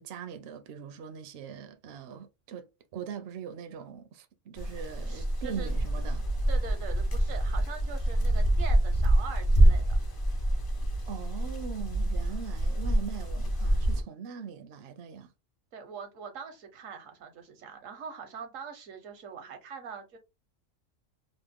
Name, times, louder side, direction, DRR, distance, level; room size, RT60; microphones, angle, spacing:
voice 1, 0.0-2.7 2.9-6.2 11.1-15.3, right 7 dB, 65° right, 0.7 m, -41 dB
sound 1, 4.6-14.0, right 1 dB, 35° left, 0.3 m, -26 dB
voice 2, 5.0-5.8 6.5-10.0 15.7-20.2, right 6 dB, 85° right, 1.2 m, -43 dB
3.0 x 2.1 x 3.5 m
omnidirectional pair, 1.3 m